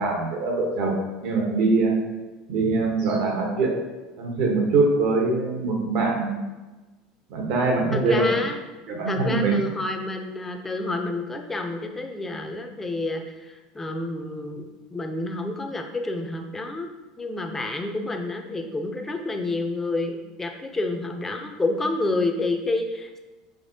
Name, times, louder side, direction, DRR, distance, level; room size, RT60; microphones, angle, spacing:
voice 1, 0.0-2.0 2.5-3.7 4.2-6.4 7.3-8.3 8.9-9.6, right 3 dB, 65° right, 0 dB, 1.1 m, -23 dB
voice 2, 7.9-8.6 9.1-16.9 17.2-23.2, left 2 dB, 15° left, 3 dB, 0.5 m, -29 dB
5.0 x 2.8 x 2.7 m, 1.2 s
supercardioid pair, 110°, 2 cm